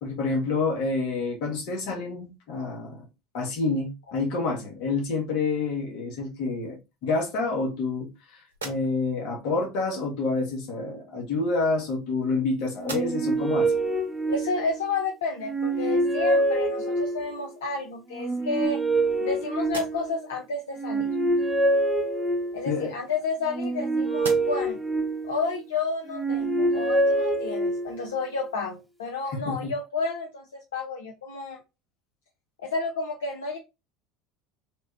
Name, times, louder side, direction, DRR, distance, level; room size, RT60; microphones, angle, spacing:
voice 1, 0.0-3.0 3.3-13.7 22.7-22.9 29.3-29.7, left 3 dB, 65° left, 1.0 m, -28 dB
sound 1, 8.5-9.3 10.4-10.6 11.5-12.4 12.7-13.5 14.0-14.1 16.7-16.8 17.3-18.0 18.5-19.3 19.6-20.3 22.3-23.8 24.1-24.8, right 3 dB, 85° right, 0.6 m, -43 dB
sound 2, 12.8-14.9 15.4-17.4 18.1-20.3 20.7-22.8 23.5-25.6 26.1-28.1, right 2 dB, 5° right, 0.6 m, -26 dB
voice 2, 14.3-18.8 19.2-21.1 22.5-24.8 25.2-31.6 32.6-33.6, left 4 dB, 80° left, 0.4 m, -31 dB
3.5 x 2.1 x 2.4 m
hypercardioid pair, 75°, 0 cm